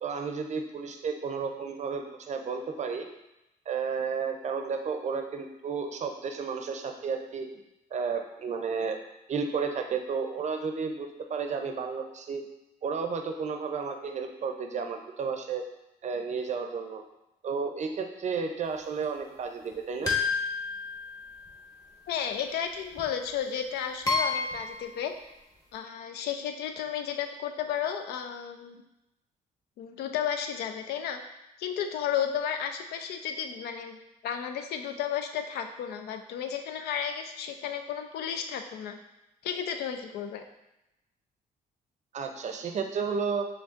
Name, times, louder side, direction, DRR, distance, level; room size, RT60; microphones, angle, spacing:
voice 1, 0.0-3.1 3.7-7.5 7.9-9.0 9.3-12.4 12.8-15.6 16.0-17.0 17.4-20.1 42.1-43.5, right 5 dB, 45° right, 5 dB, 0.5 m, -32 dB
sound 1, 20.1-21.6 23.0-23.1 24.1-24.9, left 4 dB, 20° left, 1.0 m, -30 dB
voice 2, 22.1-25.1 25.7-28.8 29.8-31.2 31.6-34.0 34.2-39.0 39.4-40.4, left 8 dB, 85° left, 6 dB, 0.4 m, -33 dB
5.1 x 3.4 x 2.5 m, 0.92 s
cardioid pair, 95°, 16 cm